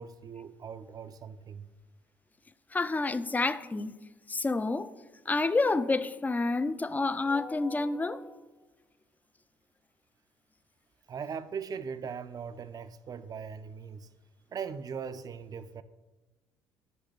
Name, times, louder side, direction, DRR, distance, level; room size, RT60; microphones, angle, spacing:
voice 1, 0.0-1.7 11.1-14.1 14.5-15.8, right 6 dB, 40° right, 0.5 m, -40 dB
voice 2, 2.7-4.0 4.3-4.9 5.3-8.4, left 3 dB, 15° left, 0.4 m, -29 dB
7.9 x 5.8 x 3.2 m
hypercardioid pair, 55°, 10 cm